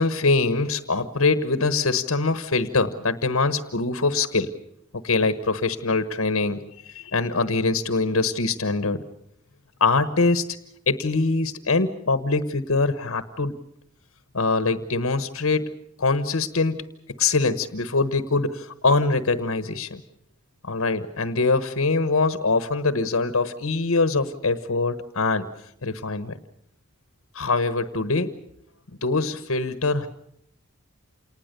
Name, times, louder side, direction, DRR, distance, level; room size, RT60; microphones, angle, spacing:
voice 1, 0.0-4.5 4.9-9.0 9.8-10.5 10.9-13.5 14.3-16.8 17.2-20.0 20.6-25.5 25.8-26.4 27.3-28.4 29.0-30.1, left 3 dB, 70° left, 11 dB, 1.2 m, -23 dB
28.0 x 19.5 x 6.8 m, 0.73 s
head